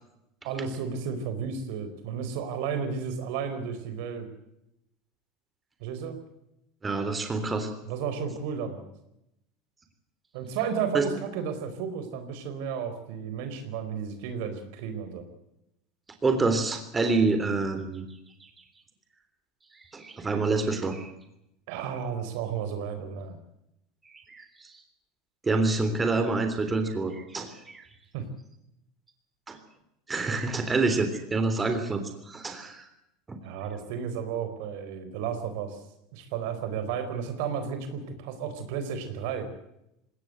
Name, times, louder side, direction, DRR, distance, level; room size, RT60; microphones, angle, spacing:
voice 1, 0.4-4.3 5.8-6.2 7.8-8.8 10.3-15.2 21.7-23.4 28.1-28.3 33.4-35.8 36.1-39.5, right 7 dB, 70° right, 9 dB, 4.3 m, -33 dB
voice 2, 6.8-7.7 10.9-11.1 16.2-18.0 19.9-21.1 24.3-24.7 25.4-27.8 29.5-29.6 30.1-32.9 33.3-33.4, right 3 dB, 20° right, 7 dB, 3.4 m, -27 dB
20.5 x 18.0 x 7.9 m, 0.82 s
supercardioid pair, 110°, 0 cm